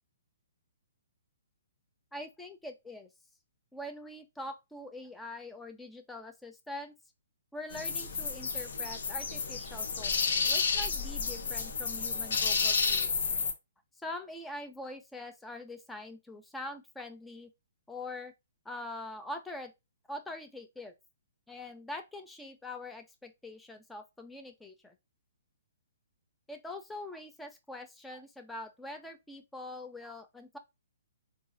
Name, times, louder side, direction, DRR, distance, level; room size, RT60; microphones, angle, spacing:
voice 1, 2.1-3.1 3.7-6.9 7.5-13.1 14.0-17.5 17.9-18.3 18.7-19.7 20.1-20.9 21.5-24.9 26.5-30.6, left 1 dB, 5° left, 0.4 m, -43 dB
sound 1, 7.7-13.5, left 5 dB, 70° left, 0.6 m, -31 dB
3.8 x 2.4 x 2.5 m
hypercardioid pair, 150°, 0 cm